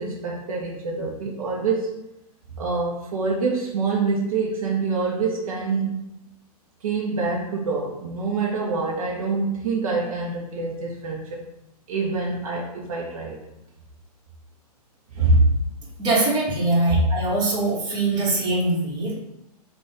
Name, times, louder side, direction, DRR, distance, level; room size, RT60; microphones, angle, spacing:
voice 1, 0.0-2.0 2.6-6.0 6.8-11.4 11.9-13.4 15.1-15.6 16.9-17.0, right 3 dB, 60° right, -3 dB, 1.0 m, -25 dB
voice 2, 16.0-19.1, right 2 dB, 20° right, -5 dB, 1.6 m, -22 dB
5.4 x 2.6 x 3.5 m, 0.85 s
figure-of-eight pair, 120°, 20 cm